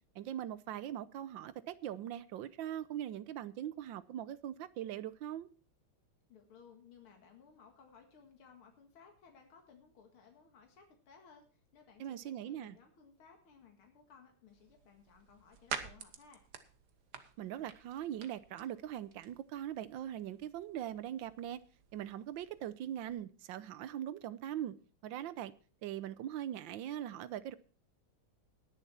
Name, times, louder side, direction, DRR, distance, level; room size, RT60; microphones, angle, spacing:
voice 1, 0.1-5.5 12.0-12.8 17.4-21.6 21.9-24.7 25.0-25.5 25.8-27.6, right 11 dB, 70° right, 1.4 m, -41 dB
voice 2, 6.3-16.4, left 6 dB, 85° left, 2.7 m, -60 dB
sound 1, 14.5-23.1, right 7 dB, 55° right, 1.5 m, -50 dB
19.5 x 7.0 x 4.3 m
omnidirectional pair, 2.3 m